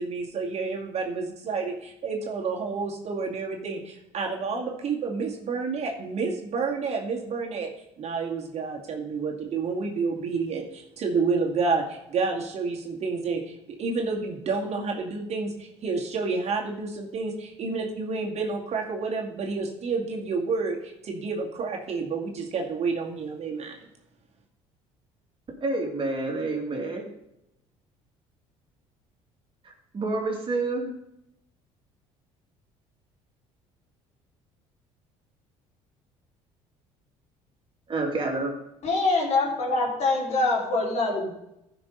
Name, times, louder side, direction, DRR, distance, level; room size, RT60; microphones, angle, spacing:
voice 1, 0.0-7.7 8.0-23.8, right 4 dB, 55° right, 0 dB, 2.2 m, -29 dB
voice 2, 25.6-27.0 29.9-30.9 37.9-38.5, right 2 dB, 40° right, 1 dB, 2.7 m, -28 dB
voice 3, 38.8-41.3, left 3 dB, 55° left, -2 dB, 3.7 m, -24 dB
14.0 x 6.0 x 4.1 m, 0.84 s
supercardioid pair, 75°, 14 cm